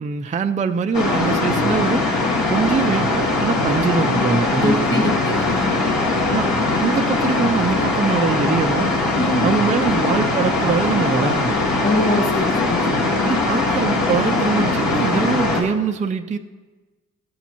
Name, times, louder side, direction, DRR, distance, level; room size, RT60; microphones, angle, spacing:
voice 1, 0.0-2.1 2.5-5.1 6.3-8.9 9.4-11.6 13.2-16.4, right 5 dB, 25° right, 7 dB, 0.4 m, -23 dB
sound 1, 0.9-15.6, left 2 dB, 65° left, 1.8 m, -20 dB
voice 2, 4.6-5.7 9.2-9.4 11.8-13.1, left 2 dB, 35° left, 2 dB, 2.1 m, -24 dB
13.5 x 7.0 x 2.9 m, 1.3 s
supercardioid pair, 55°, 32 cm